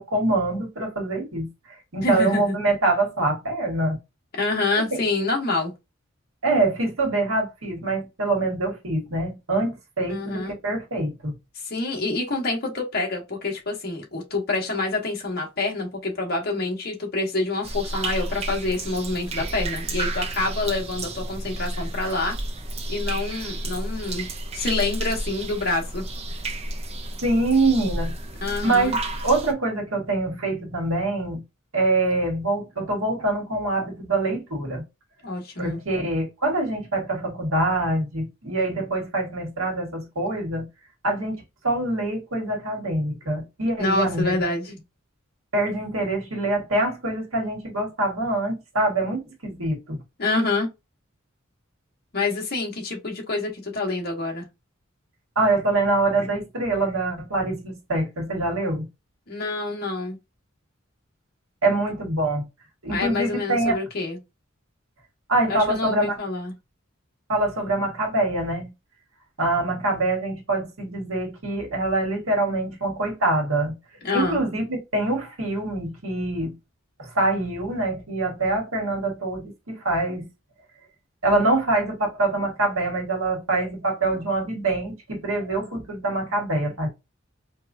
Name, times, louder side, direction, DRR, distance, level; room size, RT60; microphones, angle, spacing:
voice 1, 0.0-1.5 1.9-4.0 4.9-5.0 6.4-11.3 27.2-28.1 28.6-29.0 29.2-31.4 31.7-34.8 35.6-40.7 41.0-44.4 45.5-50.0 55.3-58.9 61.6-62.4 62.8-63.8 65.3-66.2 67.3-68.7 69.4-73.7 74.1-76.5 77.0-80.3 81.2-86.9, right 2 dB, 85° right, 1.5 m, -24 dB
voice 2, 2.0-2.5 4.3-5.7 10.1-10.5 11.6-22.4 22.9-24.3 24.5-26.0 28.4-28.9 35.2-35.8 43.8-44.7 50.2-50.7 52.1-54.5 59.3-60.2 62.9-64.2 65.5-66.5 74.0-74.4, left 2 dB, 50° left, 1.3 m, -27 dB
sound 1, 17.6-29.5, right 1 dB, 30° right, 0.6 m, -31 dB
4.6 x 2.3 x 2.6 m
head